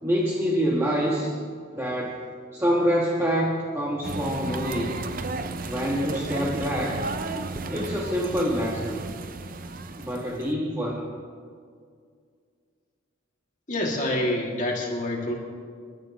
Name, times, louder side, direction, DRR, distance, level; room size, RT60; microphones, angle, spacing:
voice 1, 0.0-1.3 1.7-2.2 2.5-5.1 5.6-7.0 7.7-9.0 10.0-11.1, equal, 10° right, -4 dB, 1.5 m, -26 dB
sound 1, 4.0-10.5, right 3 dB, 40° right, 0.6 m, -33 dB
voice 2, 13.7-15.3, left 1 dB, 35° left, -2 dB, 2.6 m, -27 dB
29.5 x 13.0 x 3.1 m, 2.1 s
head